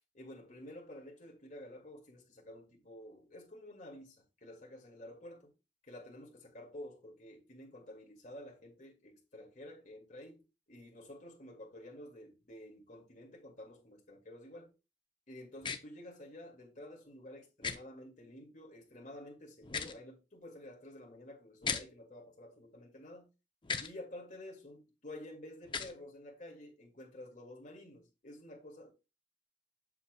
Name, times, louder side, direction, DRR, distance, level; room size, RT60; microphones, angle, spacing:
voice 1, 0.1-5.5 5.8-14.7 15.3-23.3 23.8-28.9, left 1 dB, 45° left, 2.1 m, -51 dB
sound 1, 15.6-15.8 17.6-17.8 19.6-20.0 21.6-21.8 23.6-23.9 25.6-25.9, left 6 dB, 25° left, 0.5 m, -36 dB
7.1 x 6.9 x 2.2 m
head